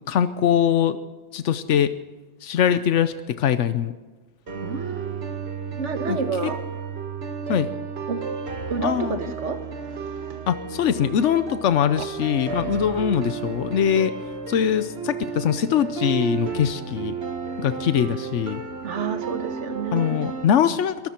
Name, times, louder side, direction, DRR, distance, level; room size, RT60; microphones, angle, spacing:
voice 1, 0.1-1.0 1.3-1.9 2.4-3.9 6.1-6.2 7.5-7.7 8.8-9.2 10.5-14.1 14.5-17.1 17.6-18.6 19.9-21.1, left 9 dB, 90° left, 11 dB, 1.1 m, -22 dB
sound 1, 4.5-20.5, right 5 dB, 60° right, 1.7 m, -32 dB
voice 2, 4.6-5.4 5.8-6.6 8.1-8.2 8.7-9.6 9.9-10.4 12.0-12.1 18.8-20.4, right 5 dB, 80° right, 9 dB, 1.6 m, -30 dB
22.5 x 13.5 x 4.4 m, 1.2 s
omnidirectional pair, 1.2 m